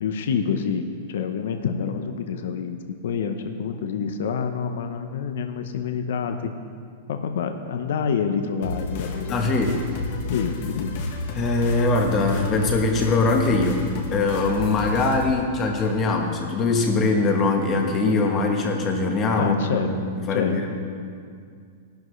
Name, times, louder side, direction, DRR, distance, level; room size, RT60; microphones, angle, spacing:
voice 1, 0.0-2.8 3.0-6.5 7.1-9.6 10.3-11.0 19.4-19.9 20.3-20.5, left 6 dB, 65° left, 7 dB, 0.8 m, -27 dB
sound 1, 8.6-15.3, left 2 dB, 40° left, 1.3 m, -31 dB
voice 2, 9.3-9.8 11.3-13.8 14.1-20.0 20.3-20.7, left 3 dB, 20° left, 2 dB, 1.2 m, -22 dB
18.0 x 11.5 x 3.2 m, 2.2 s
supercardioid pair, 175°, 0 cm